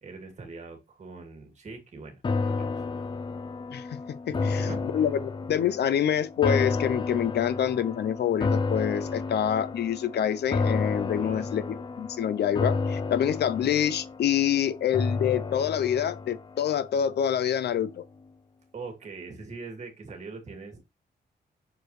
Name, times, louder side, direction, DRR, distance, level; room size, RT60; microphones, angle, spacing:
voice 1, 0.0-2.8 4.3-5.0 11.1-11.5 18.7-20.8, right 4 dB, 40° right, 2.1 m, -42 dB
sound 1, 2.2-17.5 17.9-18.0, left 4 dB, 30° left, 0.5 m, -31 dB
voice 2, 3.7-4.7 4.9-5.2 5.5-18.0, left 9 dB, 75° left, 0.6 m, -26 dB
6.3 x 4.6 x 3.2 m
wide cardioid pair, 150°, 17 cm